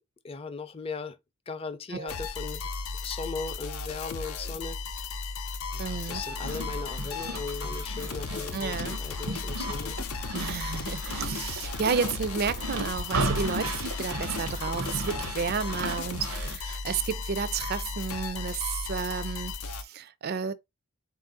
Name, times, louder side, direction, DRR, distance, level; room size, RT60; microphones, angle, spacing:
voice 1, 0.2-1.2 1.5-2.7 3.0-5.0 5.7-10.0, left 4 dB, 25° left, 0.4 m, -38 dB
sound 1, 2.1-19.8, left 4 dB, 90° left, 0.6 m, -35 dB
voice 2, 5.8-6.2 8.5-9.0 10.3-20.5, right 6 dB, 45° right, 0.4 m, -32 dB
sound 2, 6.0-16.6, right 2 dB, 85° right, 0.7 m, -35 dB
4.0 x 2.5 x 3.8 m
head